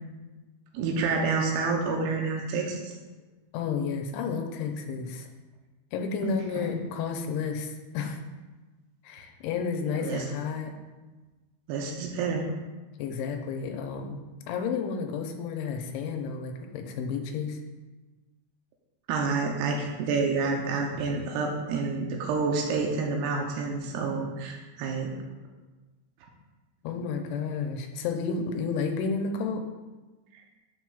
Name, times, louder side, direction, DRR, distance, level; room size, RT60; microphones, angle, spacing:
voice 1, 0.7-2.9 6.2-6.7 9.9-10.2 11.7-12.5 19.1-25.1 30.3-30.4, right 4 dB, 85° right, 0 dB, 2.3 m, -29 dB
voice 2, 3.5-5.3 5.9-8.2 9.0-10.7 13.0-17.6 26.8-29.6, left 5 dB, 85° left, 3 dB, 2.9 m, -31 dB
11.0 x 6.0 x 2.3 m, 1.2 s
omnidirectional pair, 5.4 m